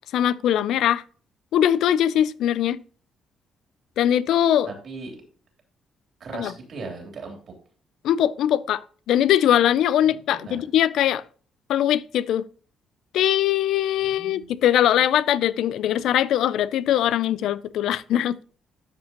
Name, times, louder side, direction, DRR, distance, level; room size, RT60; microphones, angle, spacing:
voice 1, 0.1-1.0 1.5-2.8 4.0-4.7 6.3-6.5 8.0-11.2 11.7-12.5 13.1-18.4, left 11 dB, 80° left, 0.4 m, -21 dB
voice 2, 4.7-5.1 6.2-7.4 10.0-10.2 10.4-10.6 14.0-14.5, right 4 dB, 60° right, 3.1 m, -37 dB
12.0 x 5.3 x 2.9 m
cardioid pair, 90°, 0 cm